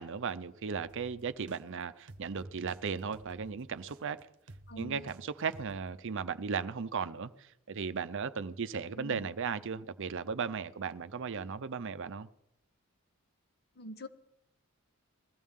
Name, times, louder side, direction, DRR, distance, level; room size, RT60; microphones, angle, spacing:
voice 1, 0.0-4.2 4.8-12.3, right 5 dB, 60° right, 13 dB, 0.6 m, -36 dB
sound 1, 0.8-1.6 2.1-2.8 3.1-5.2 5.5-5.9, right 2 dB, 90° right, 0.9 m, -52 dB
voice 2, 4.7-5.1 9.0-9.3 13.8-14.1, equal, 50° left, 10 dB, 0.9 m, -44 dB
20.5 x 14.5 x 3.7 m, 0.84 s
head